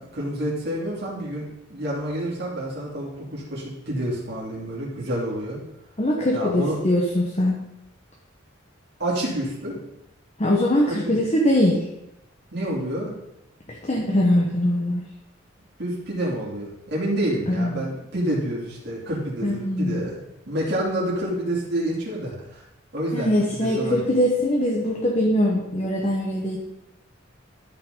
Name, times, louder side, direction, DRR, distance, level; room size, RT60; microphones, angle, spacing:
voice 1, 0.0-5.6 6.3-6.8 9.0-9.8 10.9-11.2 12.5-13.1 15.8-20.2 20.5-22.6 22.9-23.3 23.6-24.0, right 1 dB, 55° right, -4 dB, 2.9 m, -28 dB
voice 2, 6.0-7.6 10.4-11.8 13.8-15.0 17.5-17.9 19.4-20.1 23.1-26.6, left 1 dB, 30° left, -2 dB, 1.2 m, -22 dB
12.5 x 5.7 x 3.9 m, 0.86 s
head